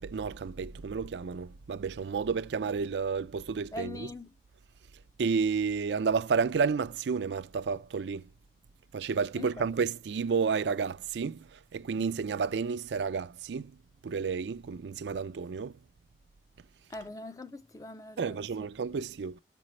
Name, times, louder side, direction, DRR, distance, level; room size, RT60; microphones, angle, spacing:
voice 1, 0.0-4.1 5.2-8.2 8.9-11.4 11.7-13.7 14.0-15.7 18.2-19.4, right 5 dB, 75° right, 0.4 m, -31 dB
voice 2, 3.7-4.3 9.3-9.7 16.9-18.5 18.9-19.0, left 2 dB, 20° left, 0.4 m, -42 dB
13.5 x 5.1 x 3.1 m
head